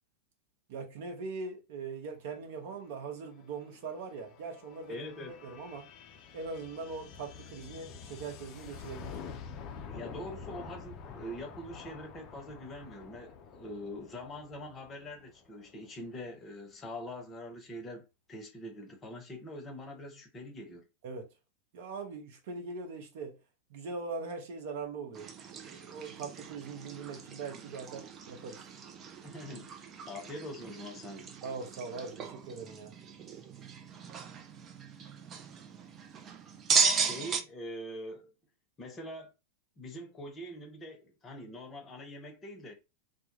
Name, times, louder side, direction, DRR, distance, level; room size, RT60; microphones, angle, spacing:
voice 1, 0.7-5.0 5.4-5.9 6.3-9.2 21.0-21.3 21.7-23.4 23.7-28.6 31.4-32.9, right 4 dB, 50° right, 0.8 m, -41 dB
sound 1, 2.6-16.1, left 6 dB, 35° left, 0.4 m, -48 dB
voice 2, 4.9-5.4 9.8-20.8 29.2-31.3 36.9-38.3 38.8-39.3 39.8-42.7, equal, 20° left, 0.8 m, -44 dB
sound 2, 25.1-37.4, right 5 dB, 25° right, 0.4 m, -36 dB
2.2 x 2.0 x 3.0 m
figure-of-eight pair, 90°, 0 cm